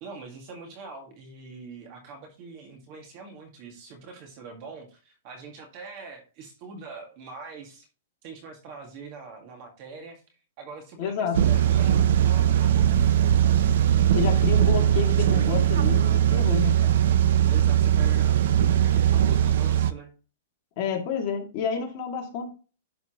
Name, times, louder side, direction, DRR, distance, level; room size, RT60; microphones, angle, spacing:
voice 1, 0.0-7.9 8.2-10.2 10.6-12.9 17.5-20.1, right 4 dB, 35° right, 3 dB, 1.9 m, -43 dB
voice 2, 11.0-11.4 14.1-16.9 20.8-22.5, left 6 dB, 35° left, 1 dB, 2.2 m, -29 dB
sound 1, 11.3-19.9, right 10 dB, 60° right, 0.6 m, -20 dB
11.0 x 4.2 x 3.0 m, 0.34 s
hypercardioid pair, 165°, 0 cm